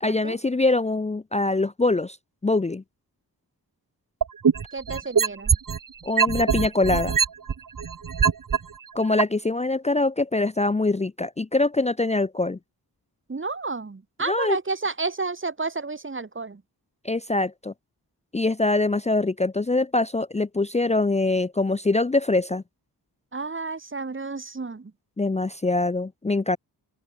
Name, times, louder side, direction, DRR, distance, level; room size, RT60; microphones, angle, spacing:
voice 1, 0.0-2.2 2.4-2.8 6.0-7.1 8.9-12.6 14.3-14.6 17.0-17.7 18.3-22.6 25.2-26.6, left 2 dB, 15° left, 0.6 m, -23 dB
sound 1, 4.2-5.8 6.2-8.6 9.2-9.3, right 6 dB, 55° right, 2.1 m, -21 dB
voice 2, 4.7-5.6 13.3-16.6 23.3-24.9, right 3 dB, 30° right, 2.1 m, -31 dB
open air
wide cardioid pair, 115°, 39 cm